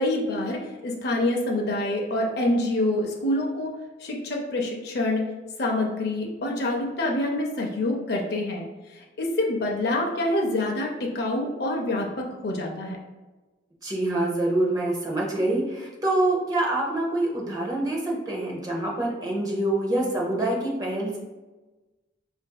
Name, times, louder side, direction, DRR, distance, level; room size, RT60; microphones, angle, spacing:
voice 1, 0.0-3.7 4.0-5.3 5.6-8.6 8.9-13.0, left 1 dB, 60° left, 0 dB, 0.5 m, -26 dB
voice 2, 13.8-21.2, right 1 dB, 20° right, -3 dB, 0.6 m, -26 dB
4.0 x 2.5 x 2.2 m, 1.2 s
head